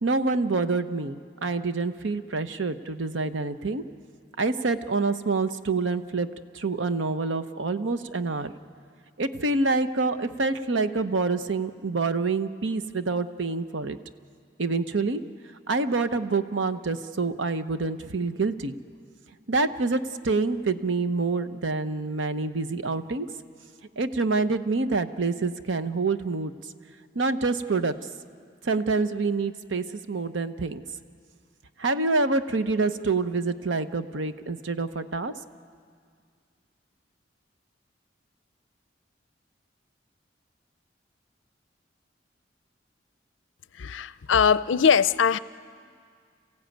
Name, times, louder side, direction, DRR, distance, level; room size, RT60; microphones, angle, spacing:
voice 1, 0.0-3.8 4.4-6.3 6.5-8.5 9.2-14.0 14.6-15.2 15.7-18.7 19.5-23.3 24.0-26.5 27.1-27.9 28.6-30.8 31.8-35.3, right 3 dB, 80° right, 11 dB, 0.9 m, -27 dB
voice 2, 43.7-45.4, left 7 dB, 85° left, 16 dB, 0.5 m, -21 dB
28.5 x 15.5 x 9.1 m, 2.1 s
head